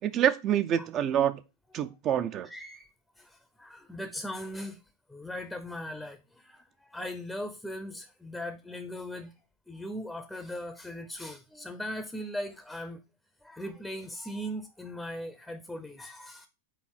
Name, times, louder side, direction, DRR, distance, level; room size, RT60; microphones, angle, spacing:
voice 1, 0.0-1.4 1.7-2.5, right 10 dB, 35° right, 0.5 m, -26 dB
voice 2, 2.4-2.9 3.2-4.8 5.1-9.3 9.7-13.0 13.4-16.5, equal, 5° left, 0.6 m, -39 dB
4.6 x 4.1 x 5.6 m
supercardioid pair, 140°, 0 cm